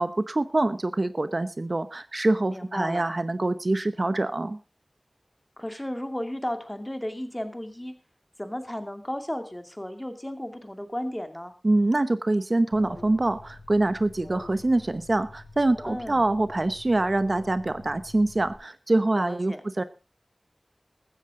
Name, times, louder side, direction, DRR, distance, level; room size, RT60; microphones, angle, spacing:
voice 1, 0.0-4.6 11.6-19.8, right 2 dB, 50° right, 12 dB, 0.8 m, -25 dB
voice 2, 2.5-3.0 5.6-7.9 8.4-11.5 15.8-16.3 19.1-19.6, left 1 dB, 15° left, 7 dB, 2.4 m, -34 dB
Alarm, 12.7-18.5, left 2 dB, 65° left, 6.7 m, -46 dB
15.5 x 13.5 x 3.7 m, 0.32 s
wide cardioid pair, 60°, 0 cm